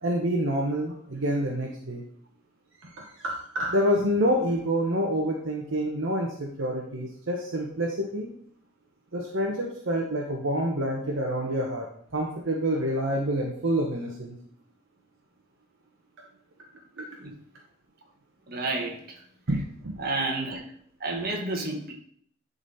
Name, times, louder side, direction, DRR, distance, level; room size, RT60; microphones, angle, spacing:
voice 1, 0.0-2.0 2.8-8.3 9.1-14.4 17.0-17.1 19.5-19.9, equal, 70° right, 0 dB, 1.1 m, -27 dB
voice 2, 18.5-19.0 20.0-20.6 21.0-21.9, right 2 dB, 50° right, 1 dB, 1.6 m, -30 dB
11.0 x 4.1 x 4.1 m, 0.63 s
head